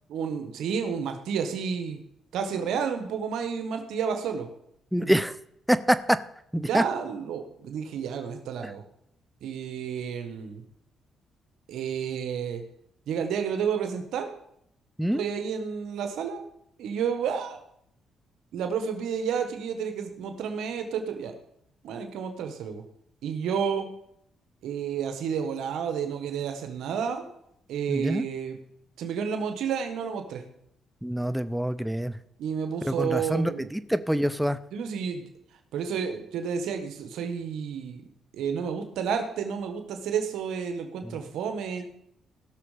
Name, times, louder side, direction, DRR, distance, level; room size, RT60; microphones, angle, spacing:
voice 1, 0.1-2.0 2.3-4.5 5.0-5.1 6.6-8.8 9.4-10.6 11.7-12.6 13.1-14.3 15.1-16.4 16.8-17.6 18.5-21.3 21.8-22.8 23.2-23.9 24.6-27.2 27.7-28.6 29.0-30.4 32.4-33.7 34.7-35.2 35.7-38.0 38.3-41.8, right 7 dB, 80° right, 6 dB, 1.4 m, -31 dB
voice 2, 4.9-5.3 5.7-6.2 6.5-6.8 8.6-8.7 15.0-15.2 27.9-28.2 31.0-32.2 32.8-34.6 41.0-41.2, equal, 5° right, 13 dB, 0.6 m, -25 dB
17.0 x 6.4 x 5.0 m, 0.72 s
cardioid pair, 90°, 0 cm